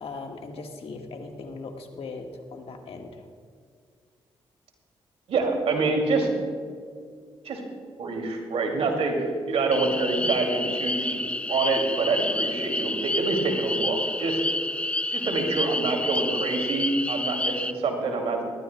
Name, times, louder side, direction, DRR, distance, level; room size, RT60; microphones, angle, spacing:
voice 1, 0.0-3.2, left 3 dB, 65° left, 3 dB, 1.5 m, -39 dB
voice 2, 5.3-6.3 7.4-7.6 8.0-11.2 11.5-14.4 15.1-18.4, right 3 dB, 80° right, 2 dB, 2.4 m, -26 dB
sound 1, 9.7-17.7, left 2 dB, 10° left, 0.5 m, -29 dB
20.5 x 13.0 x 2.2 m, 2.1 s
supercardioid pair, 55°, 10 cm